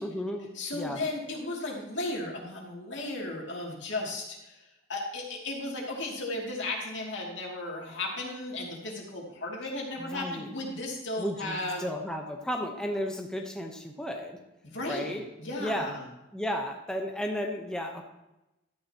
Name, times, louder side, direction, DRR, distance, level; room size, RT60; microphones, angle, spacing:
voice 1, 0.0-1.1 10.0-10.5 11.2-14.4 14.9-15.3 15.6-16.0 16.3-18.0, equal, 5° left, 2 dB, 0.9 m, -34 dB
voice 2, 0.5-4.6 4.9-11.8 14.6-15.1 15.4-16.0, left 2 dB, 65° left, -2 dB, 2.6 m, -35 dB
12.5 x 9.6 x 2.9 m, 0.95 s
head